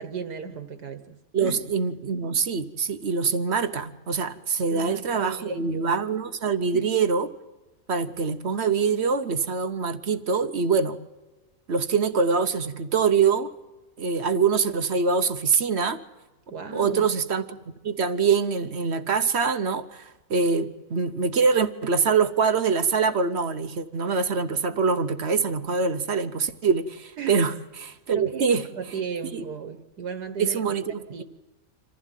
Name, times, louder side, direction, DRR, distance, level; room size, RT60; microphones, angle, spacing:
voice 1, 0.0-1.2 1.4-1.6 4.7-5.9 6.7-6.8 16.5-17.1 27.2-27.4 28.1-30.6 31.1-31.2, right 6 dB, 70° right, 1.7 m, -35 dB
voice 2, 1.3-7.3 7.9-11.0 11.7-13.5 14.0-16.0 16.7-17.6 17.8-27.5 27.8-28.7 29.3-29.4 30.4-31.2, right 5 dB, 45° right, 1.0 m, -24 dB
26.5 x 15.0 x 9.1 m
omnidirectional pair, 1.8 m